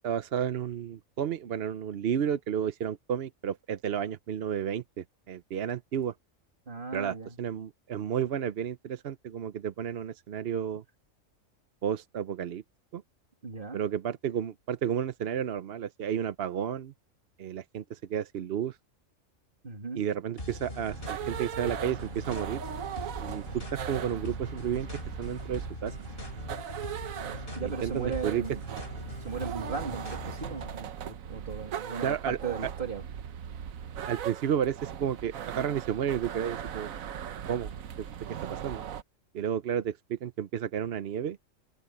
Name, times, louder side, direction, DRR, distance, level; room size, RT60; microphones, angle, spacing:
voice 1, 0.0-6.1 6.9-10.8 11.8-12.6 12.9-13.0 13.7-16.9 17.4-18.8 19.9-22.6 23.2-24.9 25.2-26.0 27.6-28.4 32.0-32.4 34.1-36.9 37.5-37.7 38.0-38.1 38.4-38.8 39.3-41.4, right 9 dB, 55° right, 0.8 m, -32 dB
voice 2, 6.7-7.4 13.4-13.8 19.6-20.0 27.6-28.6 29.2-33.0, right 5 dB, 40° right, 2.4 m, -36 dB
sound 1, 20.4-30.7, left 1 dB, 45° left, 6.3 m, -41 dB
sound 2, 20.9-39.0, right 9 dB, 90° right, 1.3 m, -39 dB
open air
omnidirectional pair, 1.4 m